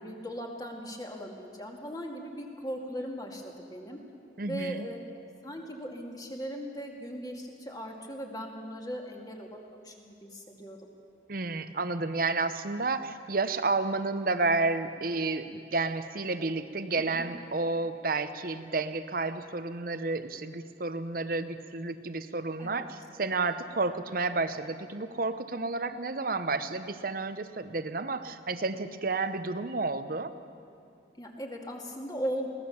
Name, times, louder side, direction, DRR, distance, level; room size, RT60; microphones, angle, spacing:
voice 1, 0.0-4.0 4.4-5.1 5.4-9.6 9.8-10.8 17.0-17.3 22.6-22.9 31.2-32.5, equal, 20° left, 1 dB, 2.1 m, -38 dB
voice 2, 4.4-4.8 11.3-30.3, right 3 dB, 50° right, 11 dB, 0.8 m, -31 dB
22.5 x 17.5 x 7.1 m, 2.5 s
head